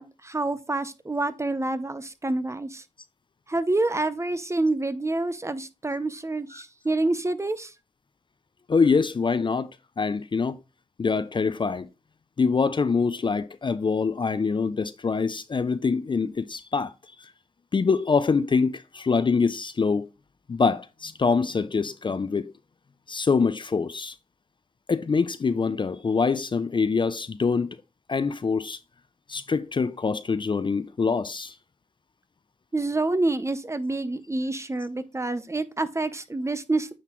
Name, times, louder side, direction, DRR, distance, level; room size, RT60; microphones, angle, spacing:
voice 1, 0.0-2.8 3.5-7.7 32.7-36.9, right 2 dB, 20° right, 0.8 m, -27 dB
voice 2, 8.7-9.7 10.0-10.6 11.0-11.9 12.4-16.9 17.7-20.1 20.5-22.5 23.1-24.1 24.9-27.8 28.1-28.8 29.3-31.5, left 5 dB, 35° left, 0.5 m, -24 dB
9.0 x 4.1 x 3.0 m
cardioid pair, 60°, 13 cm